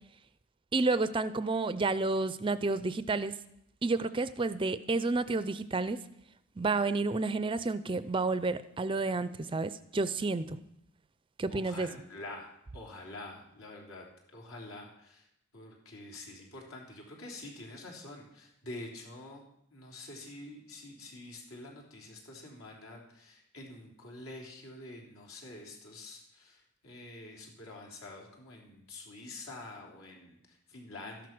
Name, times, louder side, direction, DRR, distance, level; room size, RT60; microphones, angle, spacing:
voice 1, 0.7-3.4 3.8-6.0 6.6-10.6 11.4-11.9, right 3 dB, 25° right, 14 dB, 0.4 m, -30 dB
voice 2, 11.5-12.5 12.7-14.1 14.3-15.3 15.5-19.4 19.7-31.3, left 2 dB, 75° left, 0 dB, 3.6 m, -47 dB
13.5 x 11.0 x 6.0 m, 0.76 s
head